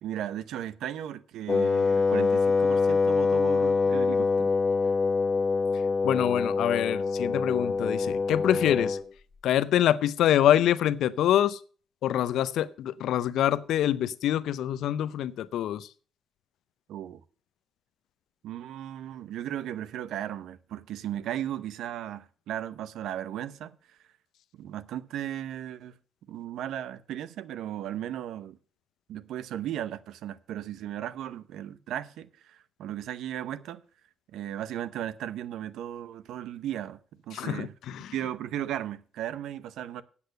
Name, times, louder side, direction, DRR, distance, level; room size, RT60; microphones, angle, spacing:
voice 1, 0.0-4.5 16.9-17.2 18.4-24.0 24.5-26.0 26.3-28.6 29.1-33.8 34.3-37.0 37.3-37.7 38.1-40.0, right 11 dB, 80° right, 0.7 m, -36 dB
Wind instrument woodwind instrument, 1.5-9.1, left 4 dB, 30° left, 0.7 m, -25 dB
voice 2, 6.0-9.0 9.4-11.6 12.0-15.9 37.3-38.1, left 11 dB, 80° left, 0.5 m, -25 dB
8.4 x 8.0 x 6.5 m
cardioid pair, 90°, 0 cm